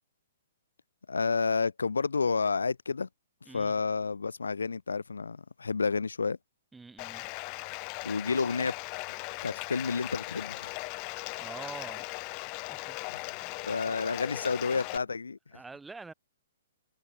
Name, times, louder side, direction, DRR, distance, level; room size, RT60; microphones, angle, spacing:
voice 1, 1.1-3.1 3.5-6.4 8.0-8.7 9.4-10.7 13.1-13.2 13.7-15.4, left 4 dB, 75° left, 0.4 m, -30 dB
voice 2, 6.7-7.3 11.4-12.1 12.7-13.0 13.4-14.0 14.4-14.7 15.5-16.1, right 3 dB, 5° right, 6.3 m, -46 dB
Bathtub (filling or washing), 7.0-15.0, left 37 dB, 35° left, 1.0 m, -38 dB
figure-of-eight pair, 120°, 0 cm